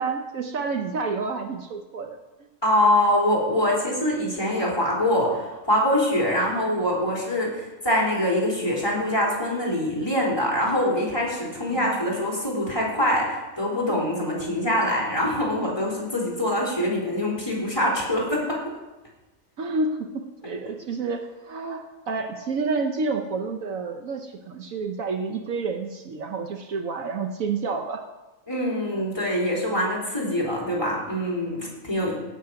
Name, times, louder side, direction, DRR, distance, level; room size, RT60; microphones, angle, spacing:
voice 1, 0.0-2.2 6.5-6.8 11.7-12.0 14.8-15.1 19.6-28.0, right 4 dB, 70° right, 5 dB, 1.2 m, -29 dB
voice 2, 2.6-18.6 28.5-32.1, left 1 dB, 15° left, -4 dB, 3.6 m, -24 dB
16.5 x 6.7 x 5.7 m, 1.1 s
omnidirectional pair, 1.5 m